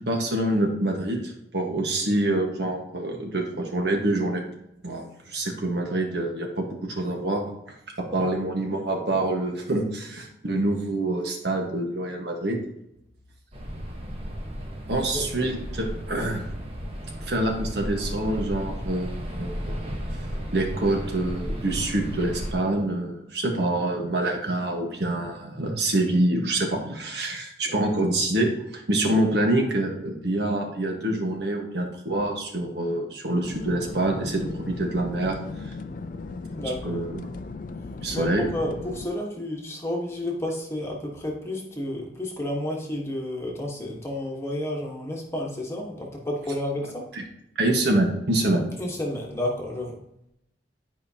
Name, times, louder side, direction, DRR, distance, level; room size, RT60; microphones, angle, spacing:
voice 1, 0.0-4.4 4.8-7.4 8.0-12.6 14.9-16.4 17.2-19.8 20.1-20.2 20.5-35.7 36.8-37.3 38.0-38.5 47.1-47.2 47.6-48.6, right 1 dB, 60° right, 1 dB, 1.4 m, -26 dB
sound 1, 13.5-22.5, equal, 35° right, 1.2 m, -34 dB
sound 2, 33.4-39.1, left 3 dB, 45° left, 0.4 m, -37 dB
voice 2, 36.5-37.0 38.1-47.0 48.8-50.0, left 1 dB, 15° left, -1 dB, 1.3 m, -31 dB
10.5 x 5.2 x 2.9 m, 0.80 s
head